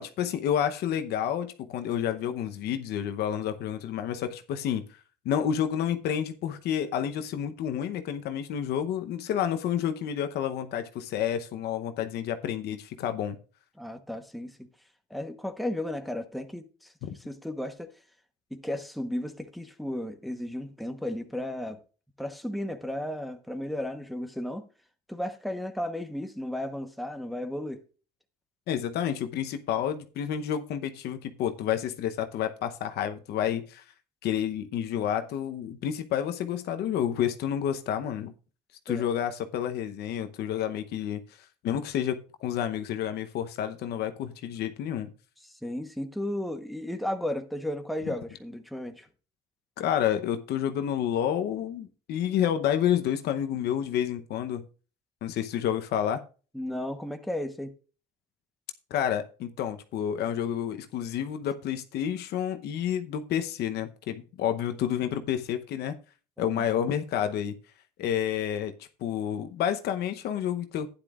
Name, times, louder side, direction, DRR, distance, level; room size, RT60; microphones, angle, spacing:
voice 1, 0.0-4.8 5.2-13.4 17.0-17.1 28.7-33.8 34.2-38.3 38.9-41.2 41.6-45.1 49.8-54.6 55.2-56.2 58.9-66.0 66.4-67.6 68.0-68.7 69.0-70.9, left 9 dB, 75° left, 0.9 m, -29 dB
voice 2, 13.8-14.7 15.1-16.9 17.2-17.9 18.5-21.8 22.2-24.7 25.1-27.8 38.9-39.1 45.4-49.1 56.5-57.7 66.4-66.7, left 1 dB, ahead, 1.0 m, -34 dB
12.0 x 9.9 x 2.4 m
cardioid pair, 110°, 17 cm